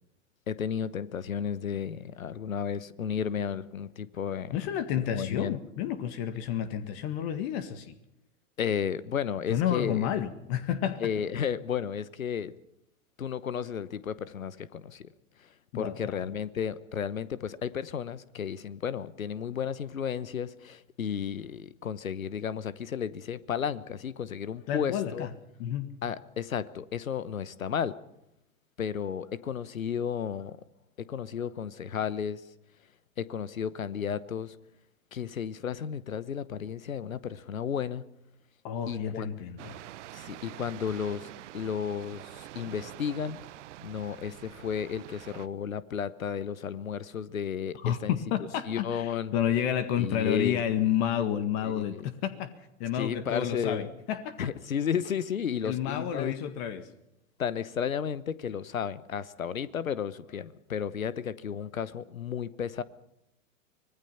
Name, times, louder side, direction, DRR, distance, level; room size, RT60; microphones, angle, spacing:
voice 1, 0.5-4.7 5.1-5.6 8.6-10.1 11.0-12.5 13.2-15.1 15.4-15.5 15.7-25.3 26.0-28.0 28.8-30.6 31.0-32.5 33.2-34.6 35.1-38.0 38.9-39.3 40.1-43.4 43.8-48.2 48.7-49.3 50.0-50.6 51.6-52.0 52.9-53.9 54.4-56.3 57.4-62.8, left 7 dB, 85° left, 1.1 m, -33 dB
voice 2, 4.5-7.9 9.5-11.1 15.7-16.2 24.7-25.3 25.6-25.9 38.6-39.8 47.8-52.5 52.8-54.5 55.6-56.9, left 10 dB, 50° left, 1.8 m, -30 dB
sound 1, 39.6-45.5, right 15 dB, 60° right, 0.9 m, -46 dB
25.0 x 20.0 x 5.7 m
hypercardioid pair, 95°, 40 cm